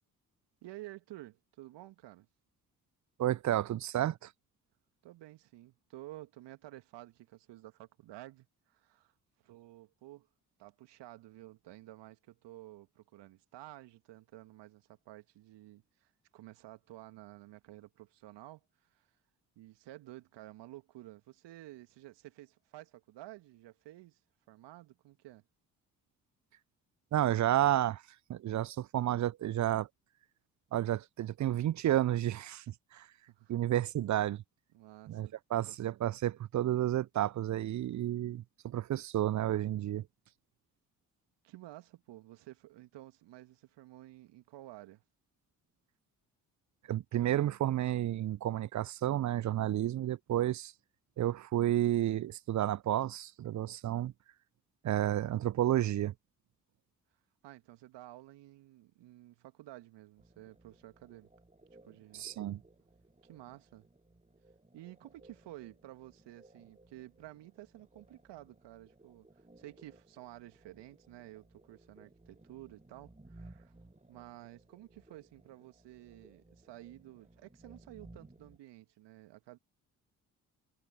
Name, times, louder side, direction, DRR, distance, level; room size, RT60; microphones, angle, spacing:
voice 1, 0.6-2.3 5.0-9.1 9.4-10.3 10.6-19.1 19.6-24.2 24.5-25.4 33.3-33.5 34.7-35.3 41.4-45.0 57.4-61.3 61.8-62.3 63.2-63.9 64.7-73.7 74.1-79.6, right 16 dB, 65° right, 2.6 m, -52 dB
voice 2, 3.2-4.3 27.1-28.0 28.3-29.9 30.7-32.6 32.9-33.0 33.5-34.4 35.1-40.0 46.9-50.7 51.2-54.1 54.8-56.1 62.2-62.6, right 12 dB, 40° right, 0.6 m, -31 dB
sound 1, 60.2-78.6, right 2 dB, 15° right, 7.4 m, -60 dB
figure-of-eight pair, 45°, 46 cm